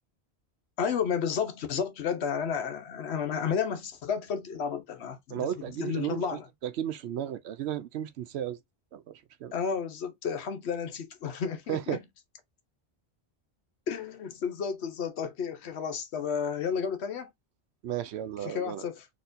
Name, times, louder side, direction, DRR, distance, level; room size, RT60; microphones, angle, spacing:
voice 1, 0.8-5.5 5.8-6.5 9.5-12.0 13.9-17.3 18.4-19.1, left 7 dB, 85° left, 1.0 m, -32 dB
voice 2, 5.3-8.6 8.9-9.5 11.7-12.0 17.8-18.8, right 10 dB, 90° right, 0.8 m, -34 dB
4.3 x 2.9 x 2.5 m
omnidirectional pair, 1.1 m